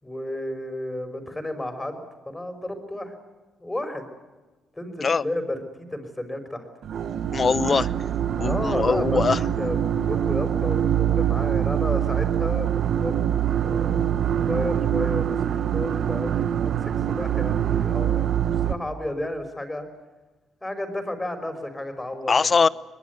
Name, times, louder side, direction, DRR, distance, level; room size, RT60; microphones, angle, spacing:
voice 1, 0.0-2.0 2.3-3.1 3.6-4.1 4.8-6.7 8.4-15.4 15.7-19.8 20.6-22.3, left 1 dB, 10° left, 7 dB, 5.3 m, -32 dB
sound 1, 6.8-18.7, right 10 dB, 65° right, 1.2 m, -24 dB
voice 2, 7.3-7.9 8.4-9.4 22.3-22.7, left 5 dB, 35° left, 17 dB, 0.8 m, -21 dB
23.0 x 22.0 x 9.5 m, 1.2 s
cardioid pair, 90°, 0 cm